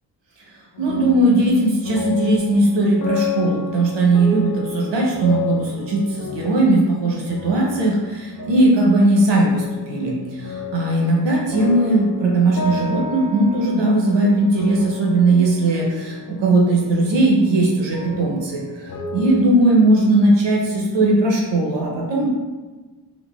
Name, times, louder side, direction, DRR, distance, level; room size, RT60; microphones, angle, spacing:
sound 1, 0.7-19.4, left 5 dB, 50° left, 0.4 m, -32 dB
voice 1, 0.8-22.3, right 2 dB, 90° right, -2 dB, 0.8 m, -18 dB
4.0 x 2.2 x 2.2 m, 1.2 s
wide cardioid pair, 105°, 42 cm